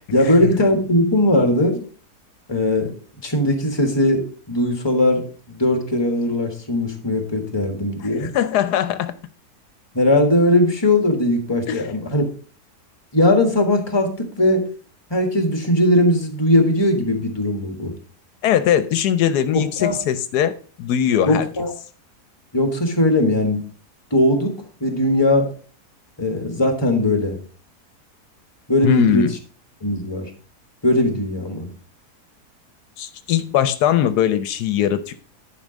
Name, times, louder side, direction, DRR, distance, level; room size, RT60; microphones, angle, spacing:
voice 1, 0.1-1.8 2.5-2.9 3.2-8.3 9.9-12.3 13.1-14.7 15.1-17.9 19.5-20.0 21.2-21.7 22.5-23.6 24.1-25.5 26.2-27.4 28.7-29.2 29.8-30.3 30.8-31.7, left 1 dB, 15° left, 5 dB, 1.6 m, -19 dB
voice 2, 8.2-9.1 11.7-11.8 18.4-21.5 28.8-29.3 33.0-35.1, left 9 dB, 80° left, 12 dB, 1.2 m, -20 dB
10.5 x 4.7 x 5.1 m, 0.40 s
omnidirectional pair, 1.7 m